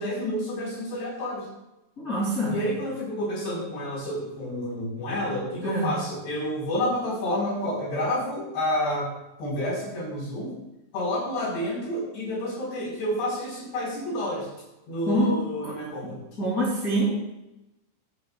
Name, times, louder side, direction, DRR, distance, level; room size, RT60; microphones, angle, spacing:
voice 1, 0.0-1.5 2.5-9.1 9.4-10.5 10.9-14.5 14.9-16.2, left 1 dB, 60° left, -6 dB, 5.9 m, -29 dB
voice 2, 2.0-2.6 5.6-5.9 15.1-15.7 16.4-17.2, right 1 dB, 25° left, -7 dB, 2.1 m, -25 dB
22.0 x 9.7 x 2.3 m, 0.95 s
omnidirectional pair, 5.5 m